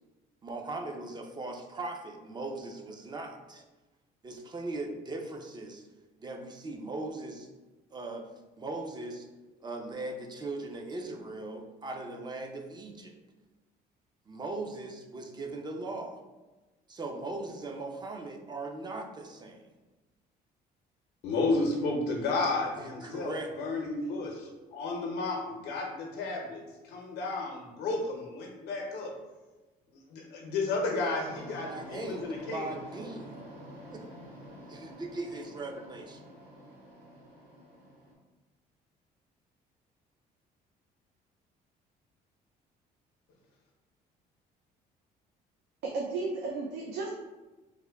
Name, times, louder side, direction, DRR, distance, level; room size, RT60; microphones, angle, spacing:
voice 1, 0.4-3.6 4.2-5.9 6.2-7.5 7.9-8.3 8.6-9.3 9.6-13.2 14.3-16.2 16.9-19.7 22.7-23.5 31.7-33.3 33.9-34.1 34.6-36.2, right 2 dB, 25° right, 3 dB, 0.4 m, -39 dB
voice 2, 21.2-29.1 30.1-32.6, left 3 dB, 85° left, 0 dB, 0.7 m, -32 dB
sound 1, 31.2-38.1, equal, 60° right, 1.3 m, -48 dB
voice 3, 45.8-47.1, right 3 dB, 80° right, -1 dB, 0.5 m, -33 dB
3.4 x 2.1 x 3.4 m, 1.2 s
cardioid pair, 110°, 17 cm